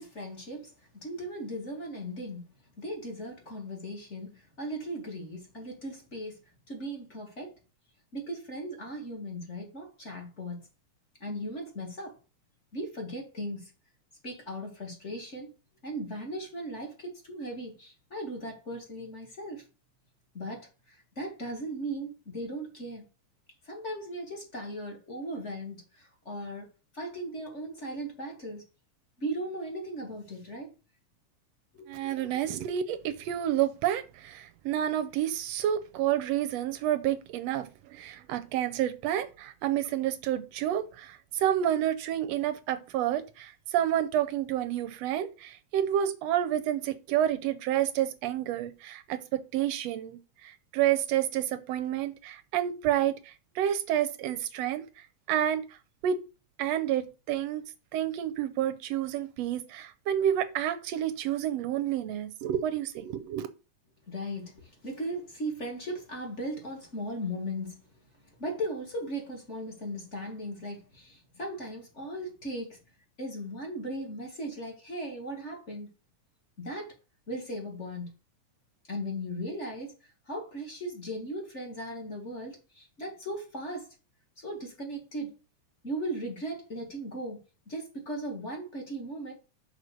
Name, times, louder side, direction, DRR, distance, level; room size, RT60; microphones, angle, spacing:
voice 1, 0.0-2.5 2.8-7.5 8.1-10.6 11.2-12.2 12.7-13.7 14.2-15.5 15.8-19.6 20.3-23.0 23.6-26.7 26.9-28.6 29.2-30.7 31.7-32.3 64.1-67.8 68.4-72.8 73.2-75.9 76.6-76.9 77.3-78.1 78.9-79.9 80.3-83.9 84.4-85.3 85.8-87.4 87.7-89.3, right 1 dB, 25° left, 1.8 m, -37 dB
voice 2, 31.9-54.8 55.3-55.6 56.0-56.2 56.6-57.6 57.9-63.5, right 11 dB, 75° right, 1.5 m, -29 dB
6.6 x 4.4 x 6.5 m
omnidirectional pair, 3.5 m